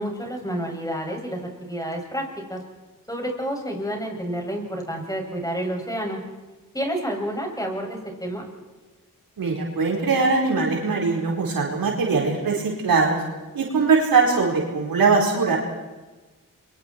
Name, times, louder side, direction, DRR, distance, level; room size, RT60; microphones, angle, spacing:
voice 1, 0.0-2.6 3.1-6.2 6.7-8.5, equal, 10° left, 1 dB, 7.5 m, -29 dB
voice 2, 9.4-13.2 13.5-15.6, right 4 dB, 85° right, -1 dB, 4.8 m, -21 dB
28.5 x 24.0 x 4.7 m, 1.2 s
cardioid pair, 50°, 34 cm